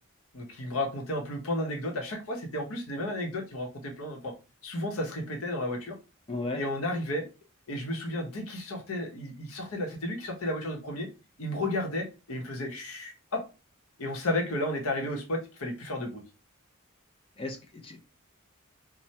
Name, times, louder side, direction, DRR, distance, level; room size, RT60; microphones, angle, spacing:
voice 1, 0.3-4.3 4.6-6.0 6.5-7.3 7.7-11.1 11.4-13.4 14.0-16.2, left 1 dB, 65° left, 2 dB, 0.8 m, -33 dB
voice 2, 6.3-6.6 17.4-18.0, left 2 dB, 25° left, 4 dB, 0.5 m, -35 dB
3.2 x 2.1 x 2.7 m, 0.31 s
head